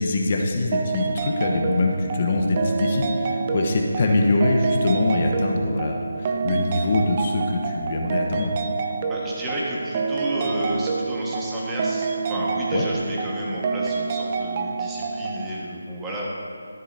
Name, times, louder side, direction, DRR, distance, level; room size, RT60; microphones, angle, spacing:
voice 1, 0.0-8.5 12.7-12.8, left 2 dB, 40° left, 1 dB, 1.1 m, -23 dB
sound 1, 0.7-15.5, right 4 dB, 30° right, 0.6 m, -27 dB
voice 2, 9.0-16.2, right 1 dB, 10° right, -6 dB, 1.6 m, -31 dB
13.0 x 11.0 x 2.8 m, 2.4 s
figure-of-eight pair, 160°, 0 cm